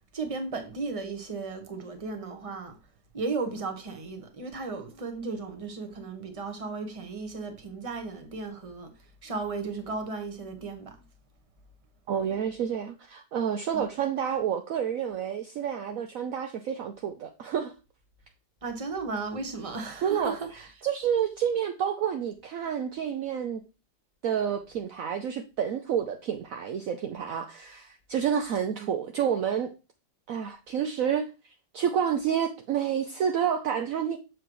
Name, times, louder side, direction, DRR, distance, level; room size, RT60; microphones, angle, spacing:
voice 1, 0.1-2.8 3.1-8.9 9.2-11.0 13.7-13.9 18.6-20.5 28.8-28.9, right 4 dB, 20° right, 1.2 m, -35 dB
voice 2, 12.1-17.7 20.0-20.3 20.8-23.6 24.2-29.7 30.3-31.3 31.7-34.2, right 8 dB, 65° right, 1.0 m, -29 dB
7.1 x 6.2 x 3.1 m
omnidirectional pair, 1.8 m